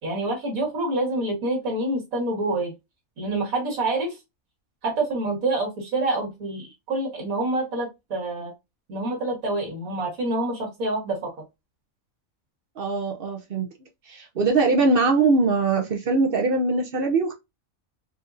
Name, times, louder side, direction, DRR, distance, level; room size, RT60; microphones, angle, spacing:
voice 1, 0.0-2.7 3.2-4.2 4.8-8.5 8.9-11.3, right 2 dB, 80° right, 1.9 m, -27 dB
voice 2, 12.8-13.7 14.1-17.3, right 3 dB, 55° right, 0.7 m, -22 dB
4.1 x 2.6 x 2.5 m
omnidirectional pair, 1.4 m